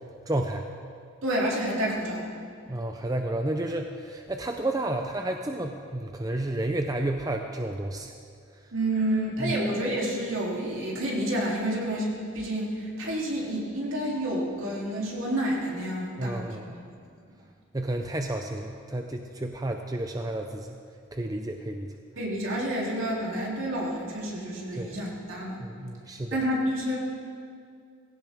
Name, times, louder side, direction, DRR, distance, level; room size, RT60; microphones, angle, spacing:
voice 1, 0.3-0.7 2.7-8.1 9.4-9.6 16.2-16.7 17.7-20.8 21.1-21.9 24.7-25.0 25.6-26.4, right 1 dB, 15° right, 4 dB, 0.5 m, -31 dB
voice 2, 1.2-2.3 8.7-16.5 22.2-25.6 26.3-27.0, right 1 dB, 70° right, -4 dB, 3.2 m, -29 dB
18.0 x 16.5 x 3.6 m, 2.3 s
head